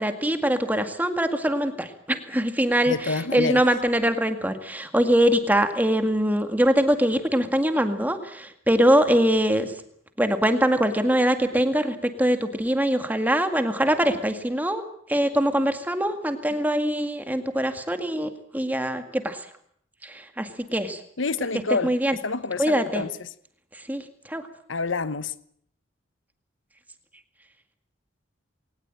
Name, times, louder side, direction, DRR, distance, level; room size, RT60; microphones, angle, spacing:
voice 1, 0.0-9.8 10.2-19.5 20.0-21.0 21.7-22.2 22.6-23.1 23.7-24.5, equal, 10° right, 2.0 m, -23 dB
voice 2, 2.9-3.6 21.2-21.9 22.2-23.1 24.7-25.3, left 3 dB, 80° left, 1.0 m, -27 dB
21.5 x 19.0 x 9.0 m
head